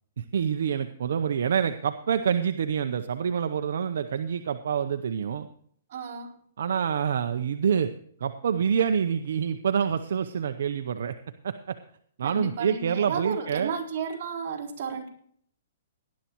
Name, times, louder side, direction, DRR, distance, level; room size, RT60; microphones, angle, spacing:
voice 1, 0.2-5.5 6.6-7.9 8.2-11.2 11.4-11.8 12.2-13.7, right 7 dB, 70° right, 8 dB, 0.7 m, -27 dB
voice 2, 5.9-6.3 12.2-15.1, right 6 dB, 45° right, -2 dB, 4.0 m, -33 dB
19.0 x 11.5 x 3.0 m, 0.62 s
hypercardioid pair, 155°, 0 cm